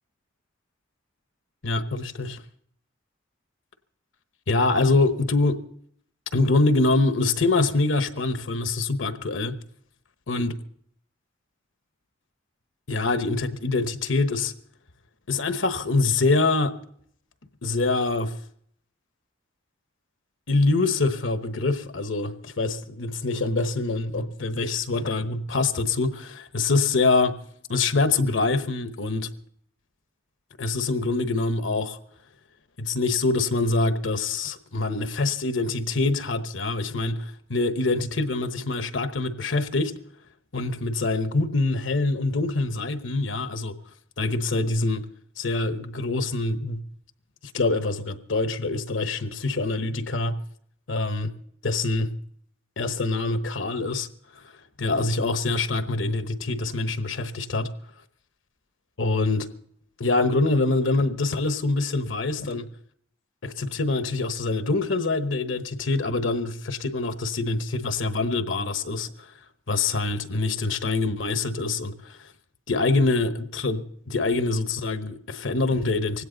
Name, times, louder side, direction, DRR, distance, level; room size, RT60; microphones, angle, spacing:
voice 1, 1.6-2.4 4.5-5.6 6.3-9.6 10.3-10.6 12.9-14.5 15.3-16.8 17.6-18.3 20.5-27.4 27.7-29.3 30.6-32.0 32.8-40.0 40.5-43.7 44.2-45.0 45.4-46.8 47.5-50.4 50.9-51.3 51.6-52.1 52.8-54.1 54.3-54.4 54.8-57.7 59.0-59.5 60.0-62.7 63.4-69.3 69.7-72.3 72.7-76.2, left 3 dB, 75° left, 1.0 m, -25 dB
19.0 x 16.5 x 3.9 m
head